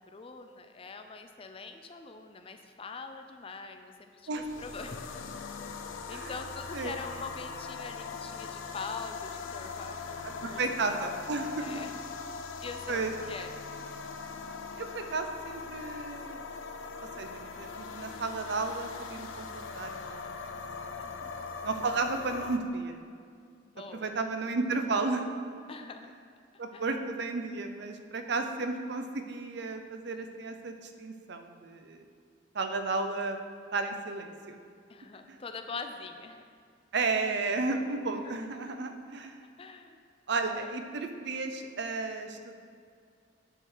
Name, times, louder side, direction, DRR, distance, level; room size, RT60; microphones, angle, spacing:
voice 1, 0.0-5.0 6.1-11.0 11.6-12.0 12.6-13.6 21.0-21.5 23.7-24.1 25.7-26.1 26.7-26.8 34.9-36.4 38.1-38.4 39.6-40.0 40.4-40.8, left 4 dB, 30° left, 6 dB, 0.4 m, -43 dB
sound 1, 4.3-22.6, left 5 dB, 90° left, 0.5 m, -41 dB
voice 2, 10.4-11.9 12.9-13.1 14.8-16.4 17.0-21.3 21.6-23.0 23.9-25.3 26.6-32.0 32.5-33.4 33.7-34.6 35.3-35.4 36.9-39.4 40.3-42.6, right 3 dB, 65° right, 7 dB, 0.6 m, -33 dB
8.0 x 3.8 x 6.1 m, 2.2 s
head